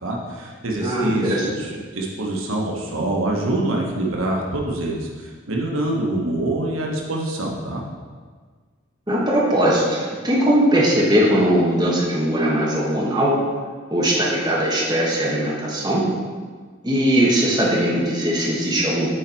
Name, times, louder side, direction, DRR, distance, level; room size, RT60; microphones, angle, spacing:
voice 1, 0.0-7.8, right 1 dB, 85° right, -1 dB, 1.2 m, -25 dB
voice 2, 0.8-1.4 9.1-13.4 13.9-16.1 16.8-19.1, equal, 20° right, -5 dB, 1.4 m, -20 dB
9.4 x 4.5 x 4.5 m, 1.5 s
head